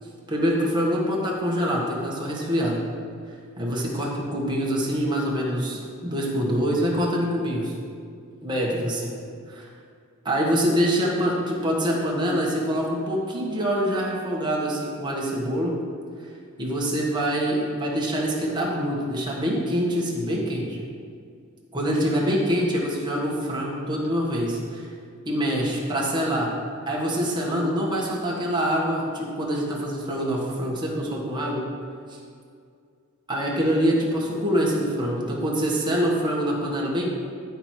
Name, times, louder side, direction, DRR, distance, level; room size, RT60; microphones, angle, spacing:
voice 1, 0.3-2.8 3.6-7.7 8.4-9.1 9.5-9.7 10.2-15.7 16.6-20.8 21.7-24.9 25.2-26.5 26.9-31.6 33.3-37.1, equal, 20° right, -4 dB, 1.4 m, -25 dB
11.0 x 4.7 x 4.4 m, 2.3 s
head